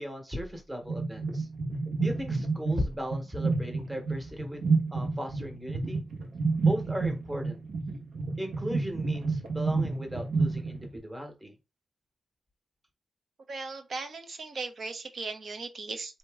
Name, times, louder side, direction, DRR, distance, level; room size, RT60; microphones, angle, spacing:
voice 1, 0.0-1.5 2.0-6.0 6.6-7.6 8.4-11.5, equal, 10° right, 1.1 m, -37 dB
sound 1, 0.8-11.0, right 4 dB, 85° right, 1.3 m, -30 dB
voice 2, 13.5-16.2, right 3 dB, 50° right, 0.8 m, -38 dB
4.5 x 2.8 x 3.5 m
wide cardioid pair, 175°, 0 cm